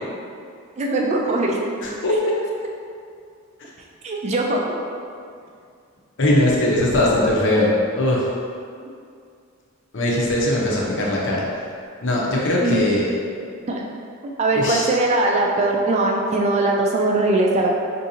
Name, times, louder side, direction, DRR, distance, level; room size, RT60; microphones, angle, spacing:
voice 1, 0.8-1.6 4.0-4.7 12.6-12.8 13.7-13.8 14.4-17.7, right 2 dB, 30° right, -1 dB, 0.3 m, -20 dB
voice 2, 1.8-2.3 6.2-8.3 9.9-11.7 12.0-13.1 14.5-14.9, left 1 dB, 60° left, -4 dB, 0.6 m, -20 dB
3.7 x 2.6 x 2.7 m, 2.3 s
head